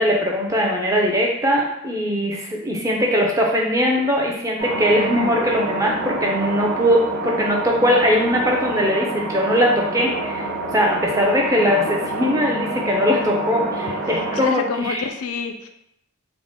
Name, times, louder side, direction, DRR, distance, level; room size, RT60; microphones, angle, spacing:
voice 1, 0.0-15.0, equal, 15° right, 0 dB, 0.4 m, -20 dB
sound 1, 4.6-14.5, right 2 dB, 45° right, 0.8 m, -27 dB
voice 2, 14.1-15.7, left 5 dB, 80° left, 6 dB, 0.4 m, -28 dB
3.6 x 2.0 x 3.6 m, 0.79 s
head